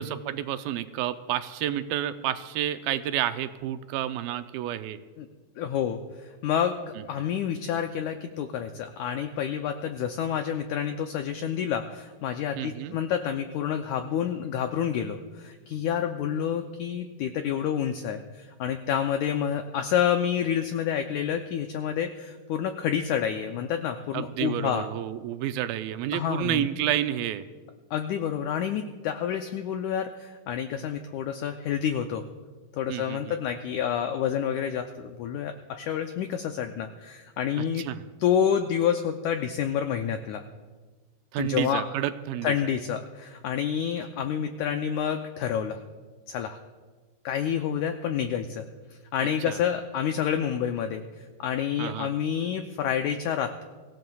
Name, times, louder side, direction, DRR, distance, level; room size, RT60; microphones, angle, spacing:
voice 1, 0.0-5.0 7.0-7.3 12.6-12.9 24.1-27.5 32.9-33.4 37.6-38.0 41.3-42.5 49.5-49.6 51.8-52.1, right 12 dB, 90° right, 10 dB, 2.4 m, -30 dB
voice 2, 5.6-24.8 26.1-26.7 27.9-32.2 32.7-37.9 38.2-40.4 41.4-41.8 42.4-45.8 46.3-46.6 47.2-48.7 49.1-51.0 51.4-53.6, left 8 dB, 90° left, 6 dB, 1.7 m, -28 dB
24.0 x 15.5 x 2.3 m, 1.4 s
omnidirectional pair, 4.2 m